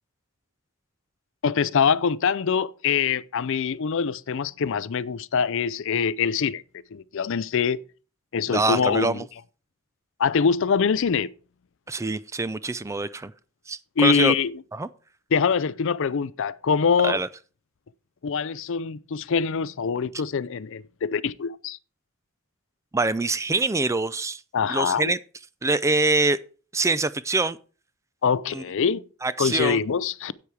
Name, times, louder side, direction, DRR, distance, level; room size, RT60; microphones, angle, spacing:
voice 1, 1.4-6.6 6.9-7.8 8.3-9.3 10.2-11.3 14.0-14.5 15.3-17.2 18.2-21.8 24.5-25.1 28.2-29.0 29.4-30.3, left 6 dB, 60° left, 0.5 m, -24 dB
voice 2, 8.5-9.2 11.9-13.3 13.7-14.3 14.7-14.9 17.0-17.3 22.9-24.4 24.7-25.2 25.6-26.4 26.7-27.6 28.5-28.6 29.2-29.8, right 3 dB, 15° right, 0.4 m, -24 dB
10.5 x 8.5 x 4.7 m
head